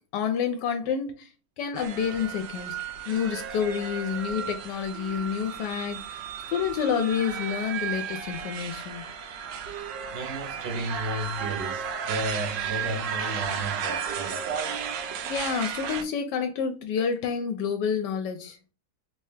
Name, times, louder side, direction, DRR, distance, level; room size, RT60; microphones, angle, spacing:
voice 1, 0.1-1.3 1.6-2.8 3.1-6.2 6.5-9.1 15.2-18.6, left 7 dB, 80° left, 1.2 m, -29 dB
sound 1, 1.7-16.0, right 7 dB, 85° right, 1.2 m, -34 dB
voice 2, 10.1-14.6, right 1 dB, 60° right, 0.7 m, -33 dB
3.2 x 2.7 x 3.2 m
omnidirectional pair, 1.9 m